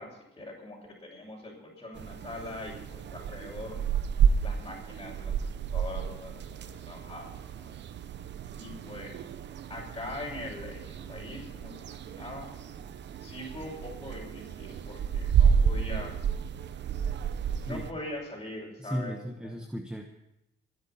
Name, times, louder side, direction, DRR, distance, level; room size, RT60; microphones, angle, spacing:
voice 1, 0.0-3.8 4.4-7.3 8.6-9.2 9.7-12.5 13.2-16.3 17.6-19.2 19.4-19.5, left 1 dB, 20° left, -6 dB, 5.8 m, -42 dB
sound 1, 1.9-17.9, right 7 dB, 65° right, 1.0 m, -31 dB
voice 2, 18.8-20.1, equal, 5° right, 4 dB, 1.3 m, -36 dB
26.0 x 9.9 x 4.3 m, 0.89 s
cardioid pair, 90°, 20 cm